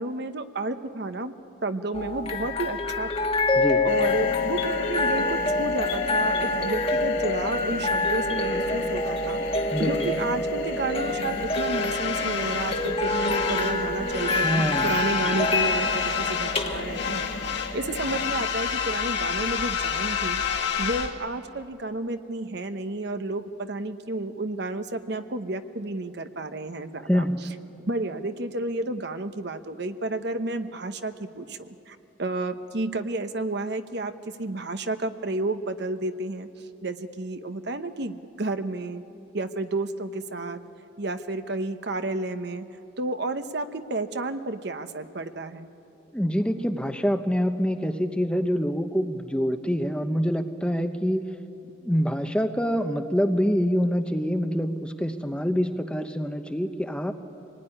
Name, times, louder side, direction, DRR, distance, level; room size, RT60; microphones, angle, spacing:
voice 1, 0.0-1.3 1.6-3.3 3.8-9.4 9.8-17.3 17.7-27.2 27.9-34.1 34.4-39.0 39.3-40.6 41.0-42.7 43.0-45.7, right 2 dB, 55° right, 9 dB, 1.0 m, -31 dB
sound 1, 1.9-21.1, left 2 dB, 30° left, 1.4 m, -27 dB
voice 2, 3.5-3.9 9.7-10.1 14.4-14.9 27.1-27.4 46.1-51.3 51.8-57.1, equal, 5° left, 7 dB, 0.9 m, -26 dB
sound 2, 3.9-18.3, left 3 dB, 75° left, 3.0 m, -35 dB
sound 3, 11.5-13.8 14.1-16.6 16.9-21.1, left 8 dB, 60° left, 2.1 m, -29 dB
25.0 x 19.5 x 9.9 m, 2.8 s
head